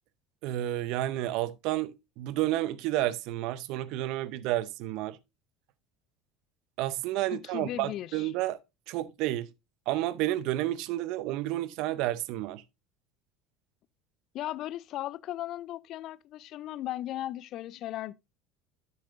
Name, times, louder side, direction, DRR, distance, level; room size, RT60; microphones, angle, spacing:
voice 1, 0.4-5.2 6.8-8.6 8.9-9.5 9.9-12.6, right 15 dB, 60° right, 0.6 m, -31 dB
voice 2, 7.3-8.3 14.3-18.1, left 14 dB, 55° left, 0.4 m, -37 dB
11.5 x 6.5 x 2.6 m
hypercardioid pair, 70°, 0 cm